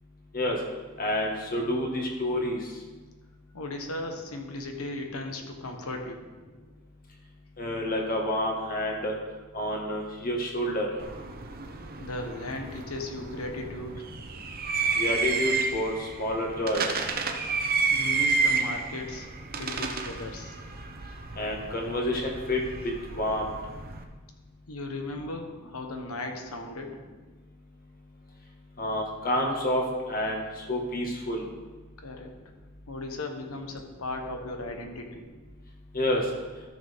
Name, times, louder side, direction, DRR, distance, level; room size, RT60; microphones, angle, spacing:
voice 1, 1.0-2.6 7.6-9.1 9.5-10.9 15.0-16.8 21.4-23.5 28.8-31.4 35.9-36.2, left 1 dB, 40° left, 0 dB, 1.8 m, -29 dB
voice 2, 3.5-6.2 12.0-14.0 17.9-19.3 19.5-20.6 24.7-27.0 32.0-32.3 32.9-35.3, left 2 dB, 75° left, 4 dB, 1.2 m, -36 dB
sound 1, 11.0-24.0, right 4 dB, 45° right, 0.8 m, -31 dB
13.0 x 6.6 x 3.7 m, 1.3 s
head